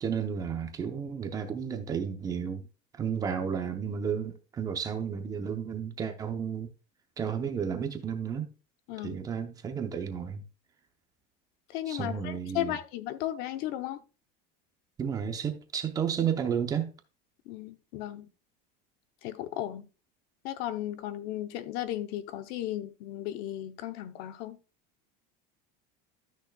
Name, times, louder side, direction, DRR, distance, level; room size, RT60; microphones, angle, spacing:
voice 1, 0.0-2.7 3.0-6.7 7.2-8.5 9.0-10.4 11.9-12.7 15.0-16.9, right 7 dB, 20° right, 0.7 m, -32 dB
voice 2, 8.9-9.2 11.7-14.0 17.5-18.3 19.2-19.9 20.4-24.6, left 13 dB, 50° left, 0.8 m, -35 dB
12.5 x 6.4 x 2.3 m
cardioid pair, 180°, 20 cm